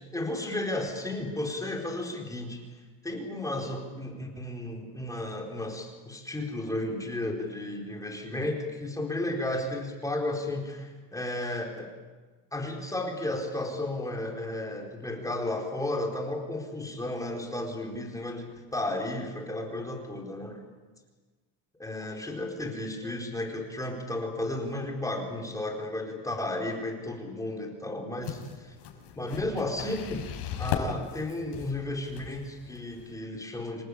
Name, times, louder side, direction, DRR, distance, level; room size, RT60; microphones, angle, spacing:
voice 1, 0.1-2.6 3.0-11.9 12.5-20.6 21.8-28.7 29.1-30.3 30.6-33.8, left 1 dB, 10° left, 0 dB, 4.4 m, -33 dB
sound 1, 28.2-33.2, left 8 dB, 70° left, 5.4 m, -37 dB
27.5 x 19.0 x 8.6 m, 1.3 s
cardioid pair, 150°, 41 cm